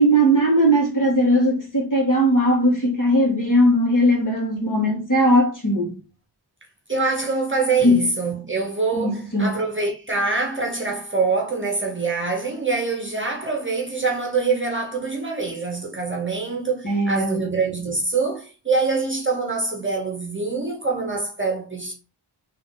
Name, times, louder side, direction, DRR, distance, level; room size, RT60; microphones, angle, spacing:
voice 1, 0.0-5.9 7.8-8.0 8.9-9.5 16.8-17.5, equal, 45° left, 2.1 m, -19 dB
voice 2, 6.9-21.9, right 4 dB, 25° right, 0.9 m, -25 dB
3.4 x 3.0 x 3.9 m
wide cardioid pair, 65°, 45 cm